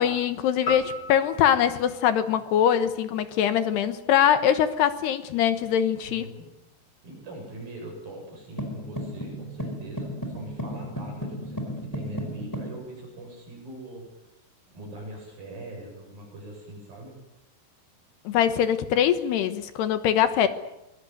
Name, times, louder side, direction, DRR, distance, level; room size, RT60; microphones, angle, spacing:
voice 1, 0.0-6.2 18.2-20.5, left 9 dB, 70° left, 11 dB, 3.1 m, -23 dB
sound 1, 0.7-3.1, left 2 dB, 40° left, 2.2 m, -37 dB
voice 2, 6.1-6.4 7.0-14.3 14.7-17.2, right 1 dB, 50° right, 0 dB, 9.5 m, -42 dB
sound 2, 8.6-12.8, equal, 5° left, 4.2 m, -34 dB
25.0 x 22.0 x 9.4 m, 0.89 s
omnidirectional pair, 5.2 m